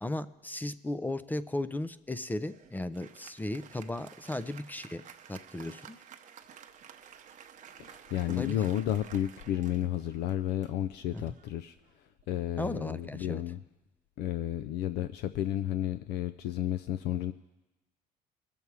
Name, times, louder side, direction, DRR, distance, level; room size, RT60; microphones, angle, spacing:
voice 1, 0.0-5.0 5.3-6.0 8.3-8.6 11.1-11.4 12.6-13.4, left 2 dB, 10° left, 14 dB, 0.4 m, -36 dB
Applause, 2.4-12.2, right 8 dB, 50° right, 0.8 m, -53 dB
voice 2, 7.8-11.8 12.3-13.6 14.2-17.3, left 11 dB, 80° left, 12 dB, 0.4 m, -32 dB
20.0 x 7.1 x 4.7 m, 1.0 s
cardioid pair, 110°, 17 cm